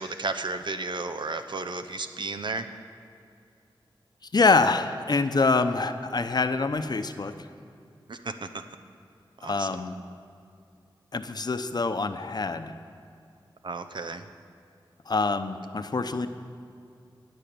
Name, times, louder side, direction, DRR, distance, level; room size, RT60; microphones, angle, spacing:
voice 1, 0.0-2.7 8.1-8.6 9.4-9.7 13.6-14.2, right 3 dB, 65° right, 8 dB, 0.8 m, -33 dB
voice 2, 4.3-7.3 9.4-9.9 11.1-12.7 15.1-16.3, left 3 dB, 50° left, 9 dB, 0.7 m, -25 dB
16.0 x 9.0 x 6.9 m, 2.4 s
wide cardioid pair, 70°, 9 cm